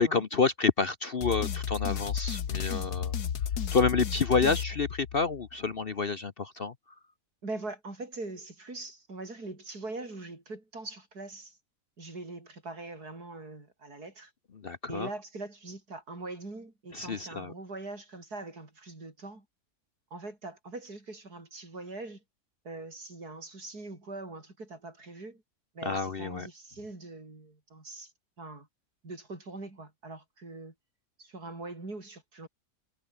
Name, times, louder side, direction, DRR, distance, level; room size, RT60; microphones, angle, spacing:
voice 1, 0.0-3.1 3.7-6.7 14.5-15.1 16.9-17.5 25.8-26.5, left 4 dB, 40° left, 1.0 m, -28 dB
sound 1, 1.2-5.5, left 8 dB, 75° left, 1.9 m, -33 dB
voice 2, 7.4-11.6 12.0-14.3 14.9-19.5 20.1-22.2 22.6-25.4 25.7-28.1 28.4-28.7 29.0-30.7 31.2-32.5, right 2 dB, 70° right, 5.9 m, -42 dB
omnidirectional pair, 1.7 m